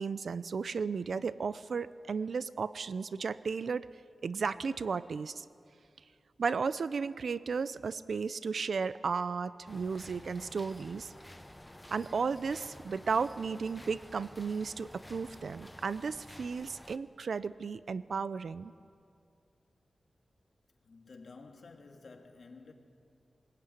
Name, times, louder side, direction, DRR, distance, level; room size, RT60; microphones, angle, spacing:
voice 1, 0.0-3.9 4.2-5.4 6.4-11.1 11.9-18.7, right 5 dB, 65° right, 15 dB, 0.6 m, -34 dB
sound 1, 9.7-17.0, left 1 dB, 10° left, 0.8 m, -51 dB
voice 2, 20.8-22.7, left 4 dB, 55° left, 2 dB, 2.4 m, -52 dB
21.5 x 21.0 x 9.4 m, 2.4 s
wide cardioid pair, 155°, 0 cm